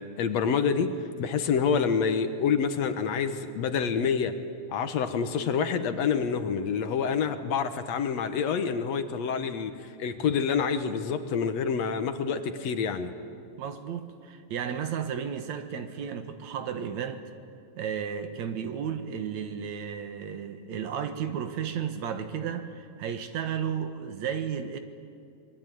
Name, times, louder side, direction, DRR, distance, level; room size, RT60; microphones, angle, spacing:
voice 1, 0.2-0.9 1.2-4.4 4.7-13.1, left 6 dB, 70° left, 2.2 m, -27 dB
voice 2, 13.6-17.2 17.8-24.8, right 8 dB, 70° right, 2.6 m, -33 dB
25.5 x 21.5 x 9.3 m
omnidirectional pair, 3.4 m